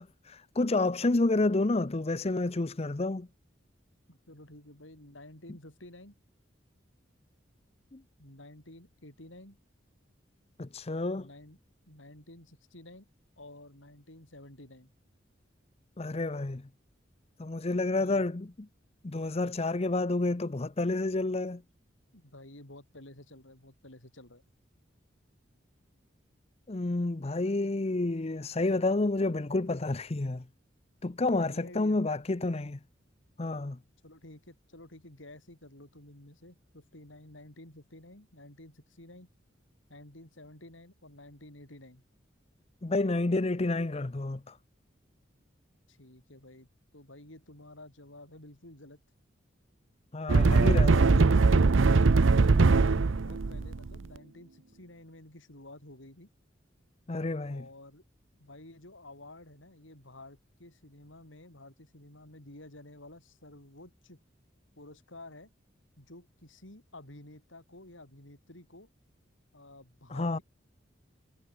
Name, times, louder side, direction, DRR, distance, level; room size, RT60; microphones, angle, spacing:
voice 1, 0.0-3.3 7.9-8.0 10.6-11.3 16.0-16.6 17.4-18.7 19.0-21.6 26.7-30.4 31.0-32.8 33.4-33.8 42.8-44.6 50.1-51.4 57.1-57.6 70.1-70.4, left 2 dB, 35° left, 0.7 m, -29 dB
voice 2, 4.1-6.2 8.2-9.6 11.1-11.6 11.9-13.1 13.4-14.9 18.0-18.2 22.1-24.4 31.4-32.0 34.0-39.3 39.9-42.0 45.9-46.7 46.9-49.0 51.9-56.3 57.5-58.0 58.4-64.2 64.8-65.5 66.0-68.9 69.5-70.4, left 1 dB, 85° left, 6.6 m, -51 dB
sound 1, 50.3-54.0, right 3 dB, 85° right, 0.6 m, -21 dB
head